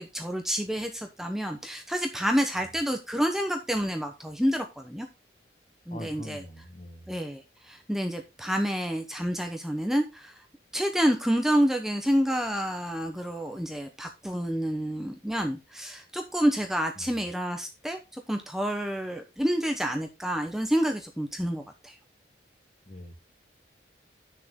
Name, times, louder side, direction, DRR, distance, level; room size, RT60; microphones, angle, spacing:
voice 1, 0.0-5.1 5.9-6.4 7.1-10.4 10.7-18.0 18.3-22.0, equal, ahead, 4 dB, 0.9 m, -28 dB
voice 2, 5.9-7.1 17.0-17.1 22.9-23.1, equal, 40° left, 7 dB, 1.6 m, -43 dB
9.6 x 6.6 x 3.7 m, 0.26 s
head